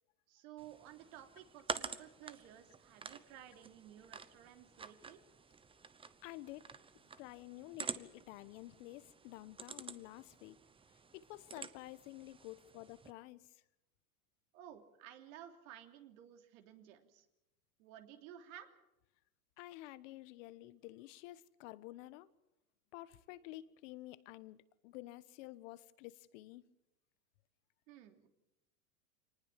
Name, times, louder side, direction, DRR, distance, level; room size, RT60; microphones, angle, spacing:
voice 1, 0.3-5.2 14.5-17.2 17.8-18.7 27.9-28.3, right 11 dB, 60° right, 3.2 m, -55 dB
sound 1, 0.6-13.1, right 5 dB, 10° right, 0.9 m, -49 dB
voice 2, 6.2-6.7 7.2-10.6 11.1-13.6 19.6-22.3 22.9-26.7, left 17 dB, 55° left, 1.3 m, -51 dB
25.0 x 19.5 x 7.5 m
hypercardioid pair, 120°, 45 cm